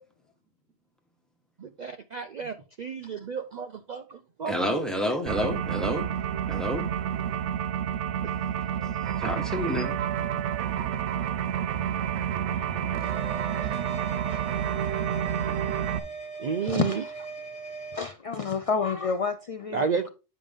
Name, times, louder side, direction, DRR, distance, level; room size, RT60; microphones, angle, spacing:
voice 1, 1.6-4.8 16.4-17.0 19.7-20.1, right 6 dB, 55° right, 0.5 m, -32 dB
voice 2, 4.5-6.1 6.5-6.8 9.2-10.0, equal, ahead, 1.2 m, -29 dB
sound 1, 5.3-16.0, right 9 dB, 85° right, 0.9 m, -29 dB
voice 3, 12.4-13.1 13.5-13.8 14.3-14.4 16.7-17.0 17.9-19.8, left 5 dB, 65° left, 0.3 m, -30 dB
sound 2, 13.0-18.1, right 4 dB, 30° right, 1.7 m, -39 dB
8.8 x 5.2 x 3.5 m
omnidirectional pair, 1.2 m